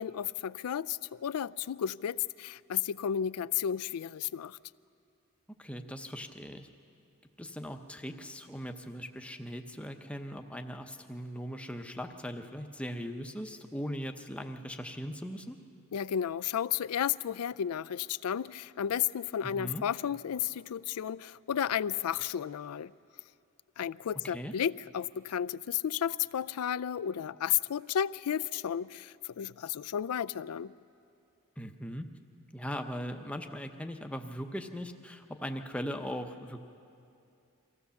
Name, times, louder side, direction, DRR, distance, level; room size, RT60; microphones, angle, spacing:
voice 1, 0.0-4.6 15.9-22.9 23.8-30.7, left 9 dB, 85° left, 0.4 m, -33 dB
voice 2, 5.6-6.7 7.4-15.6 19.5-19.8 24.2-24.5 31.6-32.1 32.5-36.6, equal, 5° left, 0.7 m, -39 dB
24.5 x 15.5 x 7.0 m
head